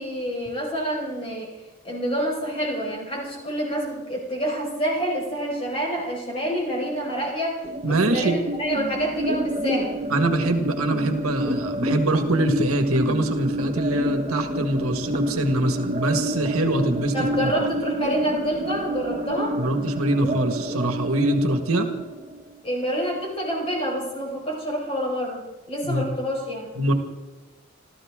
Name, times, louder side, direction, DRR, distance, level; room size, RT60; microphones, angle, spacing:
voice 1, 0.0-1.5 1.8-7.6 7.9-9.9 17.1-19.6 22.6-26.7, equal, 25° left, -2 dB, 5.1 m, -27 dB
sound 1, 7.6-22.6, right 1 dB, 30° right, 1.0 m, -29 dB
voice 2, 7.8-8.4 10.1-17.5 19.6-21.9 25.8-26.2 26.8-26.9, right 1 dB, 80° right, 6 dB, 1.8 m, -23 dB
28.0 x 14.0 x 3.8 m, 1.1 s
head